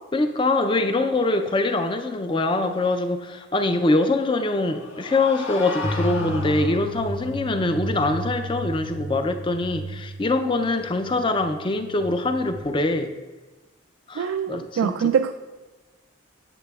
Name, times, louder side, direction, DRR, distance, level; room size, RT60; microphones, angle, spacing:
voice 1, 0.1-13.1 14.1-15.1, left 2 dB, 25° left, 7 dB, 0.4 m, -23 dB
sound 1, 4.5-7.2, left 3 dB, 80° left, 1.5 m, -35 dB
sound 2, 5.8-12.6, equal, 50° left, 3.0 m, -33 dB
voice 2, 14.2-15.3, right 7 dB, 90° right, 8 dB, 0.3 m, -23 dB
11.0 x 8.3 x 2.3 m, 1.2 s
head